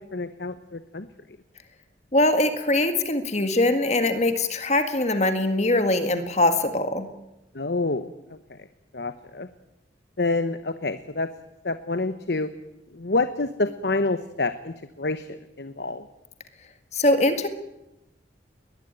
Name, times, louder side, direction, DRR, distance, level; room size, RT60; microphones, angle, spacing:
voice 1, 0.1-1.1 7.5-8.1 8.9-9.5 10.2-11.3 11.6-12.5 12.9-16.0, left 3 dB, 65° left, 11 dB, 1.1 m, -27 dB
voice 2, 2.1-7.1 16.9-17.5, left 2 dB, 40° left, 8 dB, 1.9 m, -22 dB
21.5 x 20.5 x 9.1 m, 0.92 s
head